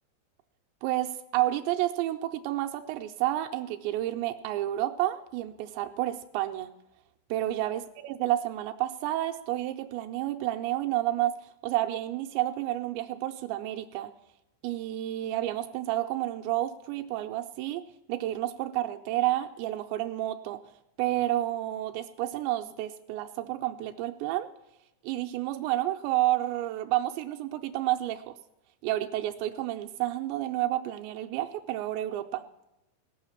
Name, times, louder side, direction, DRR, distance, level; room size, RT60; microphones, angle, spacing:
voice 1, 0.8-6.7 7.3-14.1 14.6-20.6 21.0-24.5 25.0-28.3 28.8-32.4, right 14 dB, 85° right, 5 dB, 2.8 m, -30 dB
18.5 x 6.6 x 7.2 m, 0.88 s
omnidirectional pair, 5.3 m